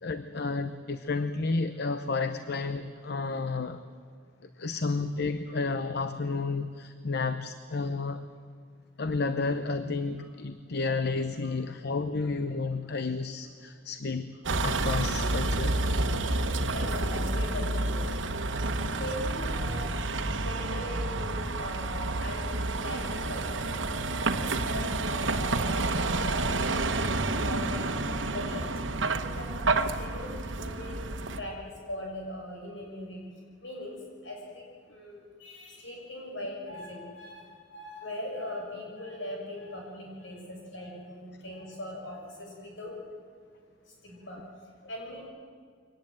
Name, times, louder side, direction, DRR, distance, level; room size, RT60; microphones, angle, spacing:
voice 1, 0.0-3.8 4.6-8.2 9.0-14.4 14.6-15.8, left 3 dB, 60° left, 10 dB, 0.8 m, -31 dB
Vehicle, 14.5-31.4, right 2 dB, 75° right, 1.3 m, -29 dB
voice 2, 16.7-18.1 18.5-19.9 20.4-22.5 22.8-23.7 24.3-28.7 29.1-31.0 31.4-31.6 31.9-33.2 33.6-34.0 34.2-34.6 34.9-37.4 37.7-43.0 44.0-44.4 44.9-45.3, left 1 dB, 75° left, -1 dB, 6.9 m, -40 dB
23.5 x 18.5 x 9.1 m, 2.1 s
head